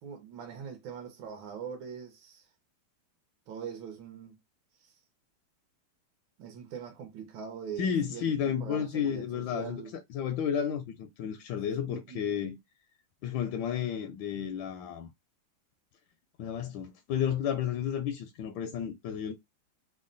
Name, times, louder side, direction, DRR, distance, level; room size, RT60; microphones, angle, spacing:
voice 1, 0.0-2.5 3.5-4.4 4.8-5.0 6.4-9.9 11.9-12.2, right 7 dB, 70° right, 1.6 m, -42 dB
voice 2, 7.8-12.6 13.2-15.1 16.4-19.3, left 8 dB, 75° left, 1.2 m, -32 dB
3.7 x 2.1 x 3.8 m
omnidirectional pair, 2.3 m